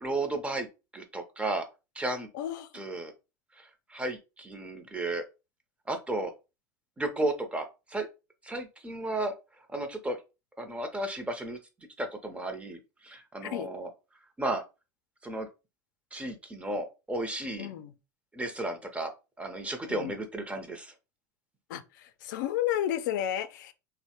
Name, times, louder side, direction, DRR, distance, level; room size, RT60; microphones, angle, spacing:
voice 1, 0.0-0.7 0.9-1.7 2.0-2.3 2.7-3.1 3.6-5.2 5.9-6.3 7.0-8.1 8.4-9.3 9.7-10.2 10.6-11.6 12.0-13.9 14.4-14.6 15.2-15.5 16.1-17.7 18.3-19.1 19.4-20.9, right 2 dB, 10° right, 0.6 m, -33 dB
voice 2, 2.3-2.7 13.4-13.7 17.6-17.9 19.9-20.1 21.7-23.7, left 11 dB, 85° left, 0.4 m, -32 dB
3.0 x 2.0 x 2.8 m
supercardioid pair, 110°, 10 cm